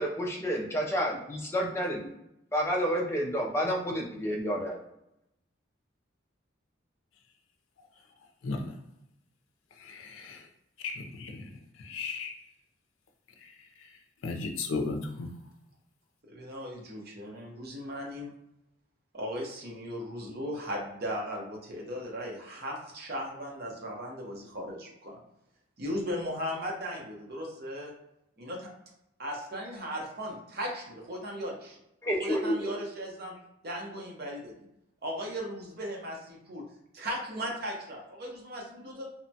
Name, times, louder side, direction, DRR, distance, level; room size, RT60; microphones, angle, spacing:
voice 1, 0.0-2.1 2.5-4.8 32.0-32.8, equal, 15° left, -1 dB, 0.4 m, -30 dB
voice 2, 8.4-8.7 9.8-10.4 10.8-11.5 11.8-12.3 13.4-13.5 14.2-15.3, left 3 dB, 85° left, 4 dB, 0.4 m, -35 dB
voice 3, 16.2-18.3 19.1-25.2 25.8-27.9 28.4-28.7 29.2-31.8 32.2-33.4 33.6-34.5 35.0-36.6 36.9-39.1, equal, 50° right, -1 dB, 0.7 m, -37 dB
2.8 x 2.1 x 2.7 m, 0.82 s
head